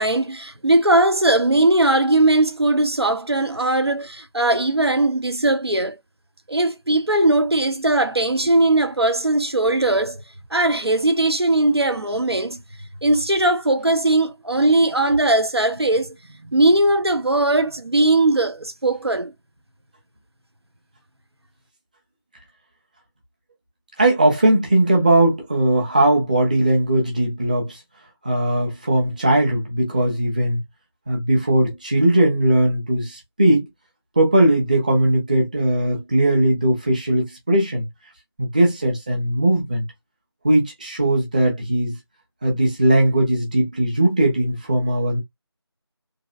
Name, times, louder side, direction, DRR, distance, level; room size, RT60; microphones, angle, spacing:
voice 1, 0.0-5.9 6.5-10.2 10.5-12.6 13.0-16.1 16.4-19.3, right 2 dB, 70° right, 1.2 m, -19 dB
voice 2, 24.0-27.8 28.2-30.6 31.1-33.7 34.2-37.9 38.4-39.9 40.4-42.0 42.4-45.2, right 1 dB, 20° right, 1.0 m, -19 dB
4.0 x 3.0 x 2.5 m
figure-of-eight pair, 165°, 14 cm